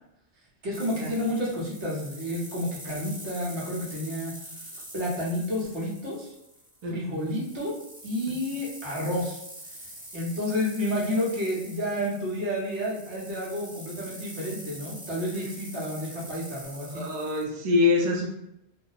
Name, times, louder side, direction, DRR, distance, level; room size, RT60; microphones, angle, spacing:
voice 1, 0.6-4.3 4.9-6.3 6.9-7.8 8.0-9.4 10.1-17.0, left 1 dB, 80° right, -5 dB, 1.3 m, -30 dB
sound 1, 0.7-17.4, right 1 dB, 10° right, 0.4 m, -44 dB
voice 2, 6.8-7.2 16.9-18.3, left 3 dB, 50° right, 0 dB, 0.6 m, -25 dB
2.7 x 2.0 x 3.9 m, 0.82 s
omnidirectional pair, 1.1 m